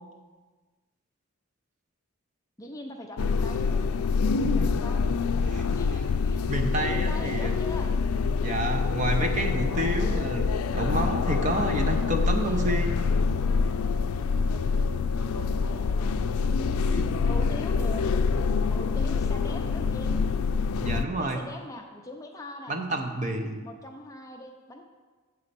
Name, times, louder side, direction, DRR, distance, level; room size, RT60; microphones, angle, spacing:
voice 1, 2.6-4.0 4.5-5.0 5.7-6.4 6.8-7.9 12.2-12.8 14.4-16.2 17.2-18.1 18.7-20.2 21.1-22.8 23.6-24.8, left 1 dB, 15° left, 3 dB, 0.5 m, -42 dB
sound 1, 3.2-21.0, left 4 dB, 80° left, 0.4 m, -26 dB
voice 2, 5.5-5.8 6.5-7.5 8.4-10.5 10.7-13.0 16.9-17.2 20.8-21.4 22.7-23.6, right 1 dB, 35° right, 4 dB, 0.7 m, -29 dB
8.0 x 4.2 x 6.7 m, 1.4 s
head